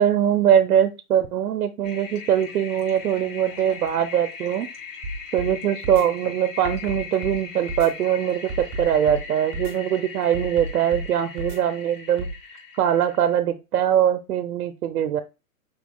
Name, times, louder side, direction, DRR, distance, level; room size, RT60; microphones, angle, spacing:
voice 1, 0.0-4.7 5.3-12.3 12.7-15.2, right 10 dB, 80° right, 9 dB, 0.7 m, -22 dB
Toilet flush, 1.8-13.4, left 6 dB, 60° left, 1.8 m, -40 dB
sound 1, 5.0-5.5 5.8-6.0 6.6-7.4 7.7-7.9 8.5-9.2 9.5-9.7 10.3-11.1 11.4-11.6 12.2-12.3, right 1 dB, 20° right, 1.1 m, -31 dB
5.6 x 3.6 x 2.3 m, 0.27 s
hypercardioid pair, 180°, 44 cm